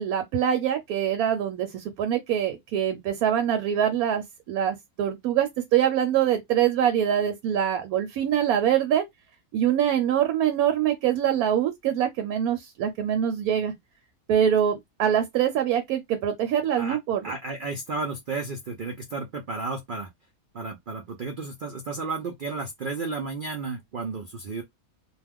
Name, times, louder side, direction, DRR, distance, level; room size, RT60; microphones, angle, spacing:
voice 1, 0.0-9.0 9.5-13.7 14.3-17.3, right 9 dB, 80° right, 1.1 m, -24 dB
voice 2, 17.2-20.1 20.5-24.6, right 3 dB, 65° right, 0.5 m, -33 dB
2.4 x 2.3 x 3.4 m
omnidirectional pair, 1.5 m